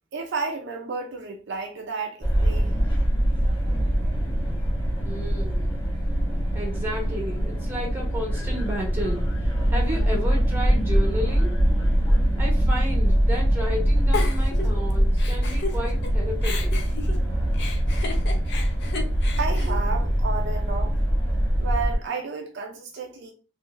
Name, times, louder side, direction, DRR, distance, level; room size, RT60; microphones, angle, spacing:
voice 1, 0.1-2.7 19.4-20.9 21.6-23.3, right 4 dB, 55° right, 0.5 m, -32 dB
sound 1, 2.2-22.0, equal, 25° left, 1.2 m, -23 dB
voice 2, 5.0-5.7 6.5-11.6 12.4-16.7, equal, 10° right, 1.0 m, -33 dB
Giggle, 14.1-16.1 16.4-20.6, left 3 dB, 55° left, 0.6 m, -34 dB
3.7 x 2.8 x 2.5 m
head